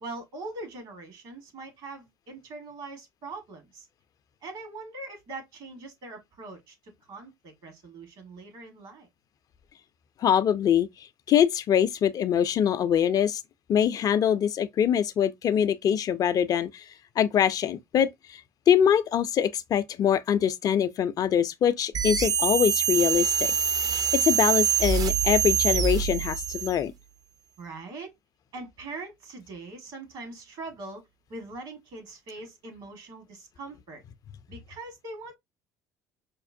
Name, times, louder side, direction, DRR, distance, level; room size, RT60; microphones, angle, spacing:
voice 1, 0.0-3.9 4.4-9.1 27.6-28.1 28.5-34.0 34.5-35.4, right 3 dB, 60° right, 1.5 m, -42 dB
voice 2, 10.2-13.4 13.7-16.8 17.2-18.4 18.7-23.5 23.8-26.9, left 9 dB, 45° left, 0.4 m, -24 dB
sound 1, 21.9-26.8, right 8 dB, 45° right, 0.5 m, -25 dB
5.1 x 2.1 x 2.5 m
hypercardioid pair, 65°, 9 cm